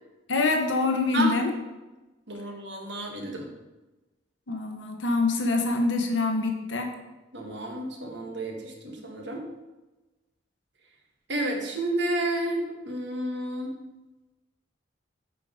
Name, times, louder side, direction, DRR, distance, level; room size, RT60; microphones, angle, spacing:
voice 1, 0.3-1.5 4.5-6.9, left 3 dB, 80° left, 3 dB, 1.1 m, -25 dB
voice 2, 2.3-3.5 7.3-9.5 11.3-13.7, right 1 dB, 65° right, 1 dB, 1.5 m, -31 dB
8.3 x 4.9 x 5.0 m, 1.1 s
head